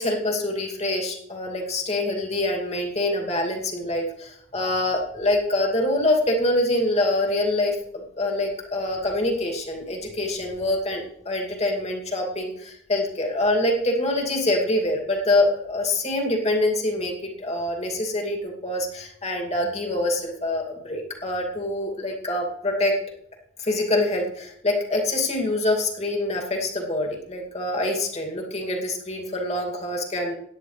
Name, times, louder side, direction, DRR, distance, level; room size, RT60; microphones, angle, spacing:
voice 1, 0.0-22.9 23.6-30.3, left 1 dB, 35° left, 1 dB, 2.6 m, -25 dB
17.0 x 9.9 x 3.4 m, 0.72 s
head